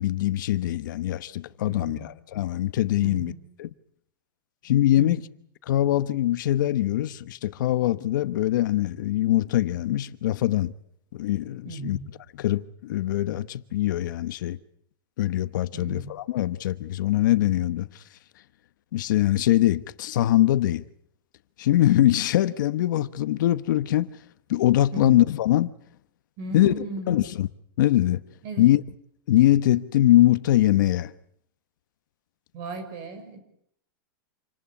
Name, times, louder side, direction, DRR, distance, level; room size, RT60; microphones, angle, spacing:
voice 1, 0.0-3.3 3.6-3.7 4.6-5.2 5.7-10.7 11.1-12.0 12.3-14.6 15.2-17.9 18.9-20.8 21.6-24.1 24.5-25.7 26.5-26.7 27.1-27.5 27.8-28.2 28.6-28.8 29.3-31.1, left 14 dB, 65° left, 1.1 m, -22 dB
voice 2, 1.7-2.1 3.0-3.4 5.0-5.3 11.7-12.1 15.7-16.1 24.9-25.2 26.4-27.2 28.4-28.7 32.5-33.4, right 3 dB, 35° right, 5.5 m, -36 dB
27.5 x 19.0 x 8.4 m
supercardioid pair, 170°, 11 cm